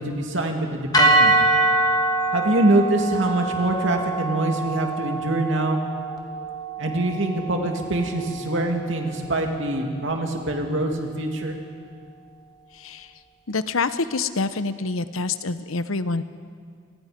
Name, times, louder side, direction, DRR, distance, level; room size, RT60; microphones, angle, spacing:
voice 1, 0.0-1.3 2.3-5.8 6.8-11.6, right 1 dB, 65° right, 2 dB, 2.7 m, -24 dB
sound 1, 0.9-9.2, right 2 dB, 20° left, 1.7 m, -24 dB
voice 2, 12.7-13.1 13.5-16.2, left 3 dB, 85° left, 12 dB, 0.9 m, -26 dB
28.5 x 20.0 x 5.3 m, 2.1 s
head